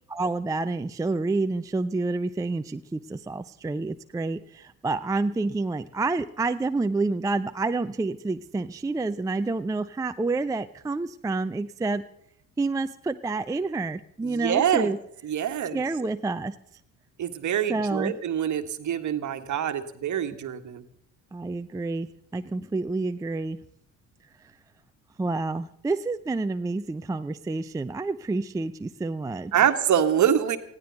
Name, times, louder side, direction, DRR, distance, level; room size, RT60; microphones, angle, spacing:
voice 1, 0.1-12.0 12.6-15.0 15.7-16.6 17.7-18.1 21.3-23.6 25.2-29.6, right 3 dB, 10° right, 9 dB, 0.5 m, -28 dB
voice 2, 14.2-14.9 15.2-15.8 17.2-20.8 29.5-30.6, right 9 dB, 40° right, 9 dB, 1.5 m, -25 dB
19.5 x 15.5 x 4.0 m, 0.72 s
figure-of-eight pair, 50°, 43 cm